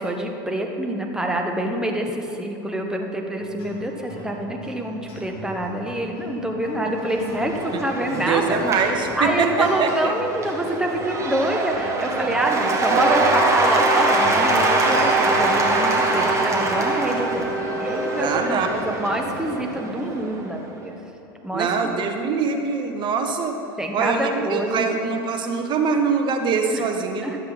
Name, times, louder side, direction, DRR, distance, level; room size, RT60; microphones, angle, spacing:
voice 1, 0.0-8.9 9.2-20.9 21.4-22.0 23.8-24.9 26.7-26.8 27.2-27.4, right 1 dB, 5° right, 2 dB, 1.2 m, -26 dB
sound 1, 3.4-22.2, left 2 dB, 50° left, 2.2 m, -41 dB
Cheering / Applause / Crowd, 7.0-20.4, right 2 dB, 25° right, 1.5 m, -23 dB
voice 2, 8.1-10.1 18.2-18.8 21.5-23.6 23.9-27.2, right 5 dB, 40° right, 4 dB, 1.2 m, -23 dB
Wind instrument woodwind instrument, 12.5-18.9, equal, 10° left, 0.8 m, -30 dB
11.5 x 7.9 x 4.1 m, 3.0 s
hypercardioid pair, 90°, 12 cm